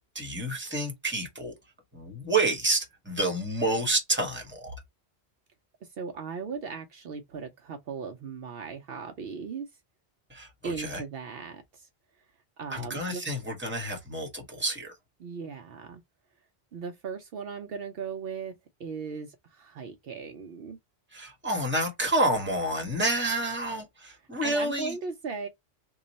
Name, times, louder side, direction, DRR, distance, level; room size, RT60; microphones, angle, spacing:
voice 1, 0.1-1.5 1.9-4.7 10.3-11.0 12.7-14.9 21.1-25.0, right 2 dB, 10° right, 1.0 m, -29 dB
voice 2, 5.8-9.7 10.6-11.9 12.6-13.2 15.2-16.0 16.7-18.5 18.8-20.8 24.4-25.5, right 5 dB, 65° right, 0.8 m, -37 dB
3.1 x 2.3 x 3.9 m
omnidirectional pair, 1.1 m